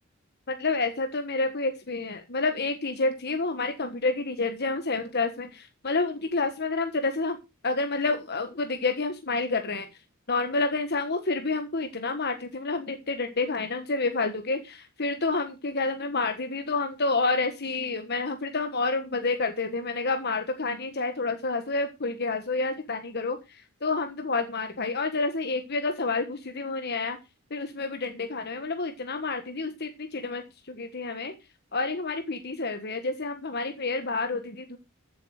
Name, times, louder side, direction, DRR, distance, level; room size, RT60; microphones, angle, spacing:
voice 1, 0.5-7.4 7.6-9.9 10.3-23.4 23.8-27.2 27.5-31.3 31.7-34.8, left 3 dB, 50° left, 7 dB, 1.5 m, -29 dB
14.0 x 8.1 x 4.9 m, 0.26 s
head